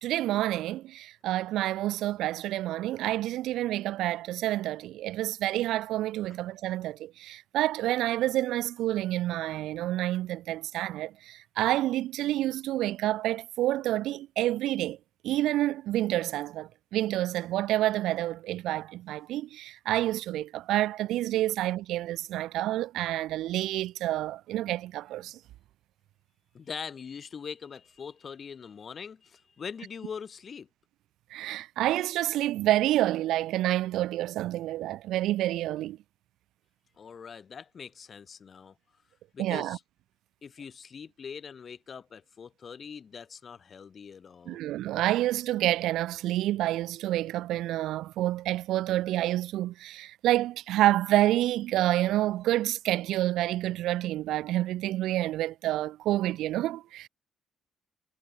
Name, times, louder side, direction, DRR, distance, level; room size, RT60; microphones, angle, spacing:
voice 1, 0.0-15.0 15.2-25.4 31.3-36.0 39.4-39.8 44.5-57.1, right 14 dB, 85° right, 0.9 m, -28 dB
voice 2, 26.5-30.7 37.0-38.7 39.3-39.8 40.4-44.6, left 6 dB, 45° left, 2.8 m, -42 dB
cardioid pair, 90°, 0 cm